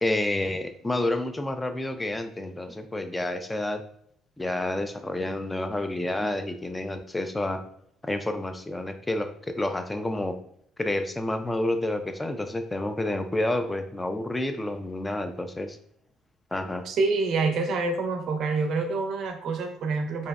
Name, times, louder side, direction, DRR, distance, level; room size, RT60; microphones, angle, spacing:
voice 1, 0.0-3.8 4.4-7.6 8.0-10.4 10.8-15.8 16.5-16.8, left 1 dB, 15° left, 7 dB, 0.3 m, -29 dB
voice 2, 16.9-20.3, right 3 dB, 60° right, 5 dB, 0.4 m, -27 dB
2.6 x 2.0 x 2.3 m, 0.68 s
cardioid pair, 105°, 0 cm